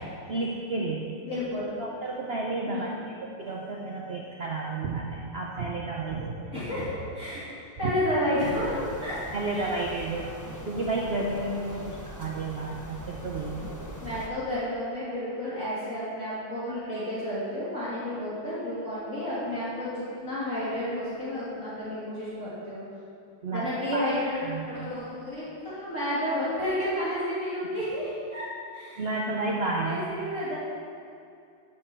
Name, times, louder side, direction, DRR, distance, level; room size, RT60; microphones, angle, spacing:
voice 1, 0.3-1.2 1.8-2.9 3.4-6.5 7.3-7.4 7.8-7.9 9.3-10.3 10.6-13.8 23.4-23.7 23.9-24.1 24.4-24.9 29.0-30.0, right 3 dB, 75° right, -2 dB, 0.5 m, -31 dB
voice 2, 1.2-1.7 2.7-3.1 6.5-7.5 7.8-9.2 9.5-9.7 14.0-22.8 23.5-28.5 28.7-29.1 29.8-30.6, left 1 dB, 40° left, -12 dB, 3.0 m, -31 dB
sound 1, 8.4-14.3, equal, 15° left, 0.6 m, -42 dB
12.5 x 6.9 x 4.5 m, 2.5 s
omnidirectional pair, 2.2 m